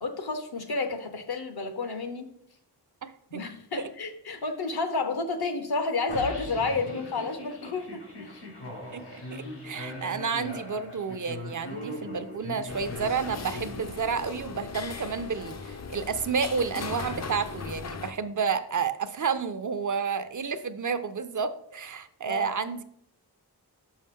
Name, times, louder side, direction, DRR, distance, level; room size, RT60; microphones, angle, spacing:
voice 1, 0.0-2.3 3.3-8.4 22.3-22.5, left 3 dB, 70° left, 8 dB, 0.9 m, -31 dB
sound 1, 6.1-14.4, left 1 dB, 90° left, 1.4 m, -40 dB
voice 2, 8.9-22.8, right 6 dB, 50° right, 12 dB, 0.5 m, -30 dB
sound 2, 12.7-18.1, left 5 dB, 40° left, 0.5 m, -38 dB
5.8 x 5.5 x 3.6 m, 0.71 s
wide cardioid pair, 90°, 40 cm